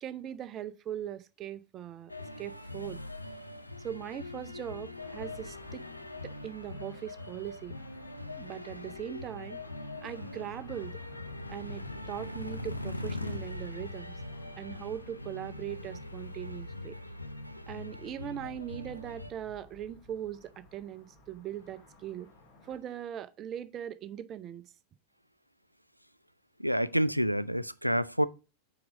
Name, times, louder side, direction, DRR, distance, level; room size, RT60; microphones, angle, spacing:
voice 1, 0.0-2.1 2.4-3.0 3.8-5.8 6.2-7.8 8.4-9.6 10.0-11.0 11.5-14.2 14.5-17.0 17.7-22.3 22.7-24.7, right 10 dB, 30° right, 0.5 m, -40 dB
sound 1, 2.1-19.3, left 2 dB, 85° left, 0.5 m, -42 dB
sound 2, 5.0-22.8, left 1 dB, 50° left, 2.4 m, -55 dB
voice 2, 8.2-8.5 14.6-14.9 17.5-17.7 26.6-28.3, equal, 90° right, 0.3 m, -29 dB
4.8 x 4.7 x 6.1 m
figure-of-eight pair, 90°, 0 cm